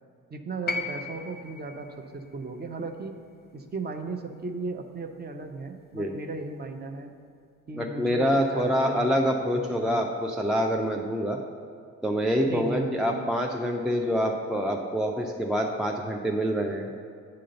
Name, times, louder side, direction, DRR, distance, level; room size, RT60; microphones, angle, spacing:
voice 1, 0.3-1.9 2.1-3.1 3.5-7.1 7.7-9.1 9.5-10.0 12.5-13.2, right 3 dB, 25° right, 6 dB, 0.7 m, -36 dB
sound 1, 0.7-4.8 6.0-6.1, left 4 dB, 20° left, 0.8 m, -38 dB
voice 2, 7.8-11.4 12.0-16.9, equal, ahead, 1 dB, 0.3 m, -26 dB
7.6 x 3.8 x 6.7 m, 2.4 s
figure-of-eight pair, 45°, 43 cm